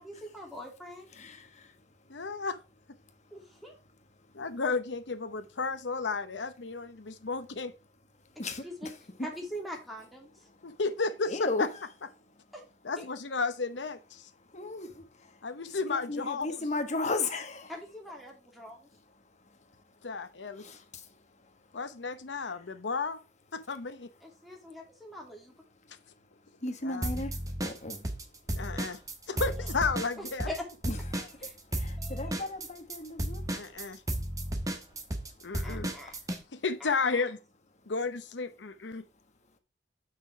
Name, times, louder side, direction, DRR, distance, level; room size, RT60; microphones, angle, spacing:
voice 1, 0.0-1.1 3.3-3.8 8.4-8.9 9.2-10.3 12.5-12.6 13.0-13.1 17.7-18.9 24.2-25.5 29.4-29.5 30.2-30.7 31.4-31.5 32.0-32.5 35.6-36.1 36.8-37.2, equal, ahead, 2.7 m, -43 dB
voice 2, 1.2-1.7 8.4-8.7 11.3-11.7 14.5-15.0 15.9-17.7 20.6-20.8 26.6-27.3 27.6-28.0 30.9-31.3 31.7-33.5, left 2 dB, 40° left, 1.4 m, -35 dB
voice 3, 2.1-2.6 4.3-7.7 10.6-11.7 12.8-14.3 15.4-16.7 20.0-20.6 21.7-23.2 23.5-24.1 26.8-27.2 28.5-29.0 29.3-30.5 33.5-34.0 35.4-35.9 36.5-37.4 37.9-39.0, left 4 dB, 90° left, 0.9 m, -33 dB
sound 1, 27.0-28.2 28.5-36.4, right 1 dB, 20° right, 1.2 m, -33 dB
6.5 x 5.9 x 4.6 m
head